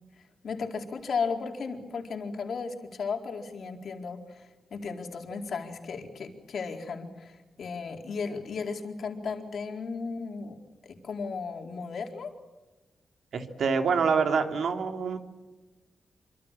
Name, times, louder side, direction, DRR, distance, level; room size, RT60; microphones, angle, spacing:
voice 1, 0.4-10.6 10.8-12.3, left 5 dB, 60° left, 3 dB, 4.3 m, -35 dB
voice 2, 13.3-15.2, right 5 dB, 75° right, 5 dB, 3.4 m, -26 dB
27.0 x 25.5 x 7.5 m, 1.1 s
wide cardioid pair, 135°, 0 cm